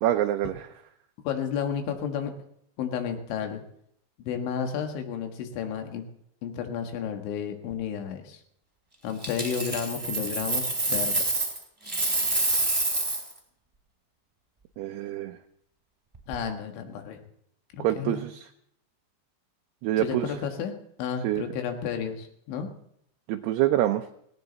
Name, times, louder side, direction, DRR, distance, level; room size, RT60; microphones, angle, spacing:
voice 1, 0.0-0.5 14.8-15.4 17.8-18.3 19.8-20.3 21.2-21.4 23.3-24.0, right 13 dB, 80° right, 5 dB, 2.5 m, -25 dB
voice 2, 1.2-2.3 2.8-3.6 4.2-6.0 6.4-8.4 9.0-11.1 16.3-17.2 17.7-18.2 20.0-20.7 21.0-22.7, left 7 dB, 80° left, 5 dB, 4.0 m, -32 dB
Coin (dropping), 9.2-11.6 11.8-13.3 16.1-16.3, right 2 dB, 10° right, 2.4 m, -27 dB
18.0 x 18.0 x 4.1 m, 0.71 s
omnidirectional pair, 5.3 m